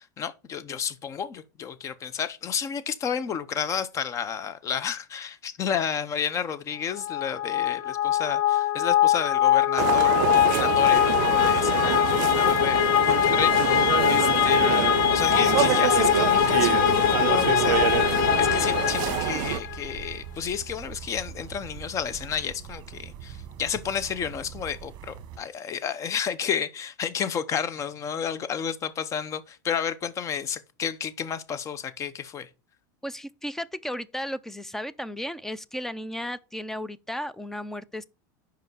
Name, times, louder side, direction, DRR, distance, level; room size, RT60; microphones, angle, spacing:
voice 1, 0.0-32.5, left 7 dB, 30° left, 0.7 m, -31 dB
sound 1, 7.0-19.8, left 11 dB, 75° left, 0.5 m, -22 dB
sound 2, 9.8-19.6, right 19 dB, 70° right, 0.4 m, -27 dB
sound 3, 17.6-25.4, right 9 dB, 45° right, 1.1 m, -42 dB
voice 2, 33.0-38.0, equal, 5° left, 0.3 m, -34 dB
5.4 x 5.1 x 6.1 m
supercardioid pair, 135°, 10 cm